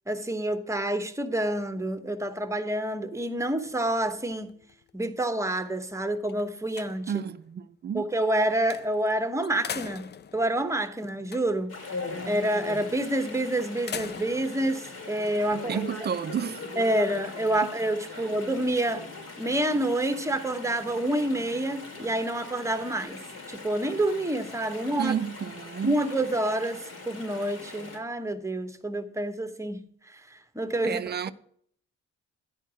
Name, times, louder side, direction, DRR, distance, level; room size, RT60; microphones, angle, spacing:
voice 1, 0.1-4.5 4.9-7.1 7.9-11.8 12.3-15.8 16.8-19.1 19.4-23.2 23.5-25.1 25.8-31.0, right 1 dB, 10° right, 0.9 m, -28 dB
sound 1, 3.7-5.2 5.7-5.8 6.2-7.3 8.7-9.1 9.4-11.8 12.8-13.1 13.6-14.5, left 7 dB, 35° left, 0.4 m, -41 dB
voice 2, 7.1-8.1 15.5-16.6 17.6-17.7 18.1-18.3 25.0-26.0 30.8-31.3, right 8 dB, 35° right, 0.4 m, -31 dB
Chatter / Stream, 11.7-28.0, left 3 dB, 50° left, 1.9 m, -41 dB
10.0 x 4.5 x 6.1 m
cardioid pair, 90°, 30 cm